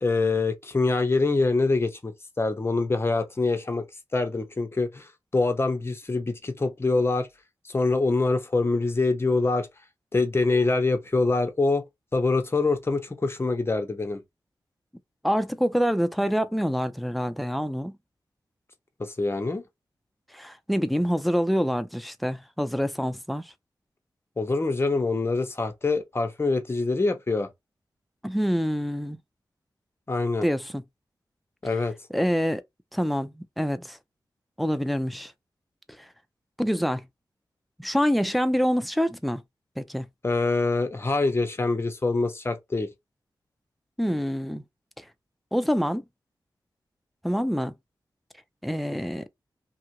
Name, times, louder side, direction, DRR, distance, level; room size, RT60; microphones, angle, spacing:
voice 1, 0.0-3.8 4.1-7.3 7.7-9.7 10.1-11.8 12.1-14.2 19.0-19.6 24.4-27.5 30.1-30.5 31.6-31.9 40.2-42.9, left 3 dB, 30° left, 0.7 m, -25 dB
voice 2, 15.2-17.9 20.3-23.5 28.2-29.2 30.4-30.8 32.1-32.6 32.9-34.0 34.6-35.3 36.0-36.1 36.6-37.0 37.8-39.4 39.8-40.1 44.0-44.6 45.5-46.0 47.2-47.7 48.6-49.3, equal, ahead, 0.4 m, -26 dB
2.8 x 2.4 x 2.9 m
wide cardioid pair, 80°, 8 cm